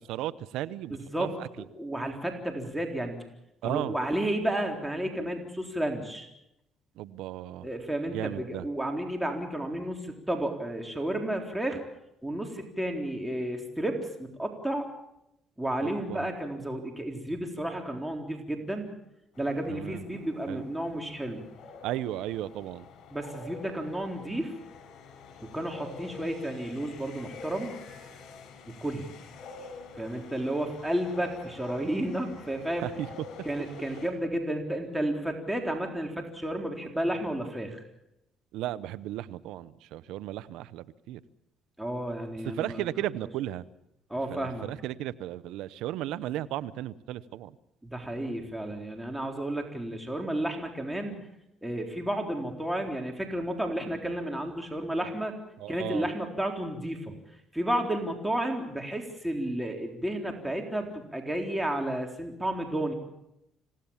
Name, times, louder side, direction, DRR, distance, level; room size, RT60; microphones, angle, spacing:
voice 1, 0.1-1.5 3.6-3.9 7.0-7.7 8.1-8.7 15.8-16.2 19.7-20.0 20.5-20.7 21.8-22.9 32.8-33.1 38.5-41.2 42.4-43.6 44.3-47.5 55.6-56.1, right 13 dB, 80° right, 16 dB, 0.8 m, -35 dB
voice 2, 0.9-3.2 3.6-6.3 7.6-11.8 12.2-14.9 15.6-18.9 19.4-21.4 23.1-24.5 25.4-27.7 28.8-29.1 29.9-32.9 33.5-37.8 41.8-42.8 44.1-44.7 47.8-51.2 51.6-55.3 55.7-57.2 57.5-62.9, right 1 dB, 5° right, 2 dB, 3.9 m, -32 dB
sound 1, 19.4-34.1, left 4 dB, 65° left, 6.6 m, -47 dB
27.5 x 17.0 x 7.3 m, 0.84 s
supercardioid pair, 65°, 0 cm